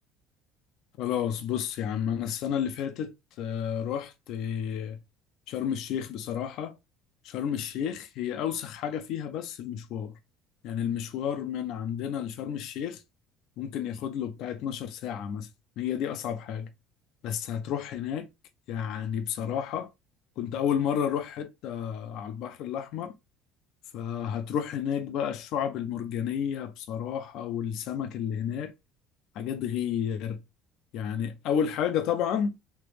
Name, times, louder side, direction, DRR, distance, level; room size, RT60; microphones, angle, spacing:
voice 1, 1.0-5.0 5.5-6.7 7.2-10.1 10.6-13.0 13.6-15.5 15.8-16.7 17.2-18.3 18.7-19.9 20.4-23.1 23.9-28.7 29.3-30.4 30.9-32.5, left 8 dB, 60° left, 0.6 m, -31 dB
3.3 x 2.9 x 3.2 m
cardioid pair, 150°, 0 cm